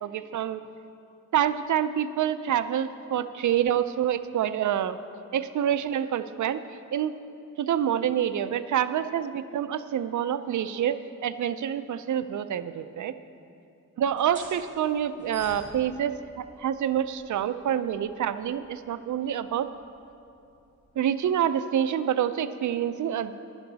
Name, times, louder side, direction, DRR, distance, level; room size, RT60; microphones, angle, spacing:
voice 1, 0.0-0.6 1.3-5.0 5.3-6.6 6.9-7.1 7.6-11.0 11.2-13.1 14.0-19.7 21.0-23.3, right 9 dB, 70° right, 12 dB, 0.5 m, -27 dB
sound 1, 14.0-21.3, right 2 dB, 25° right, 3.1 m, -51 dB
11.5 x 11.5 x 4.0 m, 2.7 s
wide cardioid pair, 155°, 31 cm